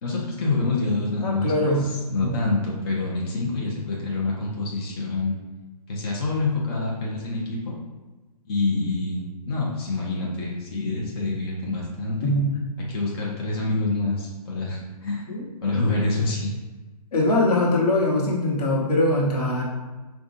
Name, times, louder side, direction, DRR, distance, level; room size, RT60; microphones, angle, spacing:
voice 1, 0.0-5.4 5.9-7.8 8.5-12.3 12.9-15.3 15.6-16.5, left 3 dB, 40° left, -4 dB, 0.7 m, -26 dB
voice 2, 1.2-1.9 2.2-2.3 12.2-12.5 15.3-15.4 15.7-15.8 17.1-19.6, left 1 dB, 80° left, -3 dB, 1.2 m, -22 dB
5.0 x 2.3 x 2.6 m, 1.2 s
hypercardioid pair, 150°, 20 cm